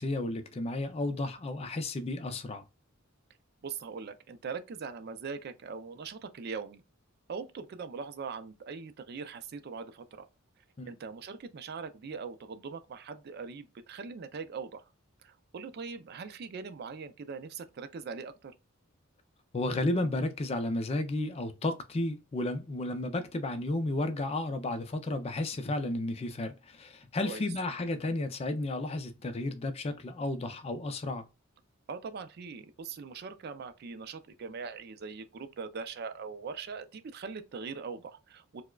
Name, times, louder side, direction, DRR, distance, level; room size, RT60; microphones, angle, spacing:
voice 1, 0.0-2.6 10.8-10.9 19.5-31.2, left 2 dB, 30° left, 0.4 m, -33 dB
voice 2, 3.6-6.8 7.3-10.3 10.9-14.8 15.2-18.5 27.2-27.4 31.9-38.6, right 5 dB, 50° right, 0.4 m, -41 dB
4.6 x 2.1 x 2.2 m
head